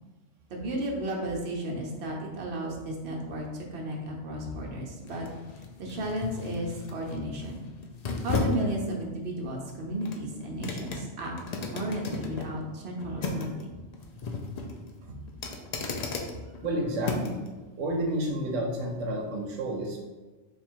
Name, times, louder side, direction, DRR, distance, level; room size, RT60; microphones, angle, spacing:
voice 1, 0.5-5.3 5.8-7.6 8.2-11.3 11.7-13.7, right 1 dB, 65° right, -1 dB, 1.0 m, -33 dB
sound 1, 2.8-17.5 17.9-18.1, left 3 dB, 70° left, 0.4 m, -36 dB
voice 2, 16.3-17.4 17.8-20.0, right 1 dB, 90° right, 1 dB, 1.0 m, -31 dB
3.4 x 2.4 x 4.4 m, 1.2 s
omnidirectional pair, 1.2 m